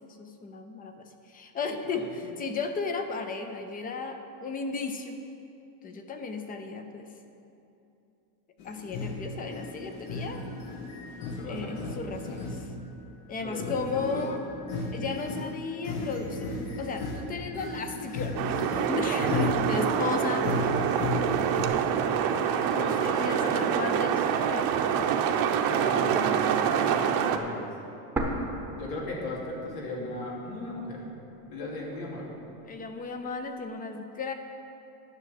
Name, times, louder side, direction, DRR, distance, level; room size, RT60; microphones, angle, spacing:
voice 1, 0.0-5.2 5.8-7.1 8.6-10.4 11.4-12.6 13.3-14.4 14.9-16.5 16.8-20.5 22.8-24.8 26.7-27.3 32.7-34.3, left 4 dB, 20° left, 7 dB, 0.4 m, -35 dB
sound 1, 8.6-13.0 13.4-21.7, left 2 dB, 65° left, 1.8 m, -35 dB
voice 2, 11.3-11.8 13.4-14.4 19.3-19.5 22.6-23.8 25.7-27.7 28.8-31.0 31.5-32.3, left 2 dB, 85° left, -3 dB, 2.9 m, -37 dB
sound 2, 18.4-27.4, right 8 dB, 50° right, 0.8 m, -26 dB
sound 3, 28.2-30.1 30.4-30.5 31.2-32.2, right 1 dB, 5° right, 0.9 m, -34 dB
10.5 x 6.3 x 7.6 m, 2.8 s
cardioid pair, 150°, 47 cm